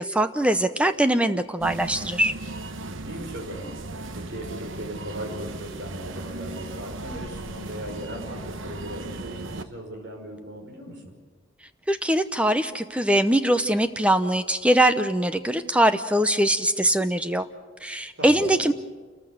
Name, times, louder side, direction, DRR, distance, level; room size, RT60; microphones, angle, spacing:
voice 1, 0.0-2.3 11.9-17.5 17.8-18.7, right 1 dB, 5° right, 10 dB, 0.7 m, -22 dB
sound 1, 1.6-9.6, right 2 dB, 80° right, 1.1 m, -36 dB
voice 2, 2.9-3.7 4.1-11.1 18.2-18.6, equal, 60° right, 2 dB, 5.7 m, -38 dB
29.0 x 14.5 x 8.0 m, 1.4 s
head